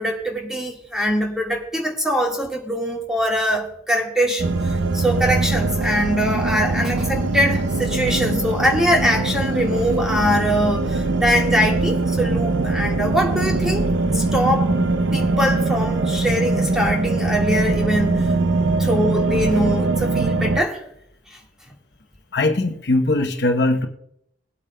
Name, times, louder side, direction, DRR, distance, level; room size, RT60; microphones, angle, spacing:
voice 1, 0.0-14.7 15.1-18.3 18.8-20.8, equal, 5° right, 1.6 m, -22 dB
sound 1, 4.4-20.6, right 3 dB, 75° right, 0.6 m, -22 dB
voice 2, 22.3-23.9, left 2 dB, 60° left, 0.9 m, -20 dB
22.0 x 8.6 x 2.2 m
head